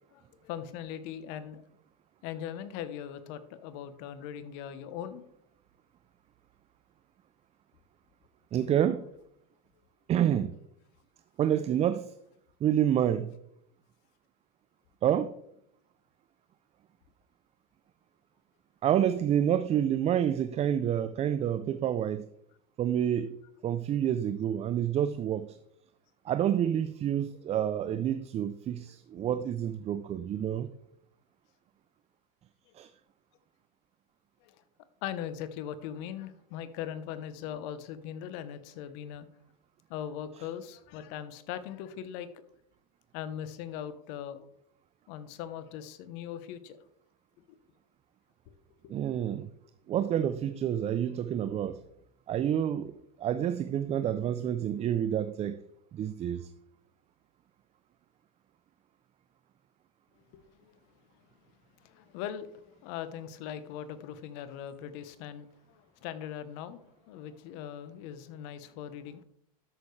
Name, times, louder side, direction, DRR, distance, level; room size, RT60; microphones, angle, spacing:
voice 1, 0.1-1.6 2.2-5.2 34.4-34.5 35.0-39.3 39.9-42.4 43.1-44.5 45.1-46.8 47.5-47.6 48.8-48.9 60.3-60.8 61.8-69.2, left 9 dB, 60° left, 1.0 m, -40 dB
voice 2, 8.5-9.0 10.1-10.6 11.4-12.1 12.6-13.4 15.0-15.3 18.8-22.3 22.8-23.4 23.6-25.6 26.2-30.7 32.7-32.9 48.9-49.5 49.9-51.8 52.3-52.9 53.2-55.6 55.9-56.5, right 10 dB, 30° right, 0.5 m, -28 dB
13.0 x 6.8 x 3.3 m
hypercardioid pair, 105°, 20 cm